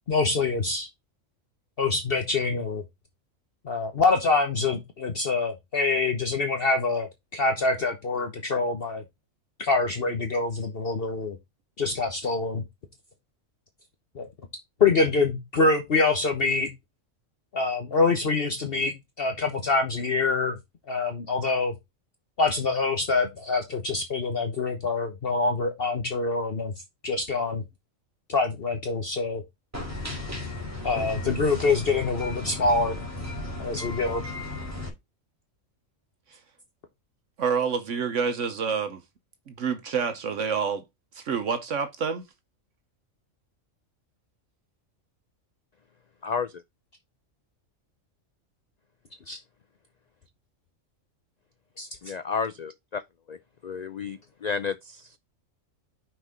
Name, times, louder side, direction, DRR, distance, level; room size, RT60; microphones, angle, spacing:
voice 1, 0.1-0.9 1.8-2.8 3.6-9.0 9.6-11.4 11.8-12.6 14.1-14.3 14.8-16.7 17.5-20.6 20.9-21.7 22.4-26.7 27.0-27.6 28.3-29.4 30.8-33.0 33.6-34.2 49.3-49.4 51.8-51.9, left 3 dB, 50° left, 1.2 m, -25 dB
sound 1, 29.7-34.9, left 2 dB, 10° right, 2.5 m, -35 dB
voice 2, 37.4-39.0 39.5-40.8 41.1-42.3, right 6 dB, 70° right, 1.2 m, -28 dB
voice 3, 46.2-46.5 52.0-53.0 53.3-55.2, left 5 dB, 85° left, 0.3 m, -32 dB
6.0 x 4.6 x 4.9 m
omnidirectional pair, 1.4 m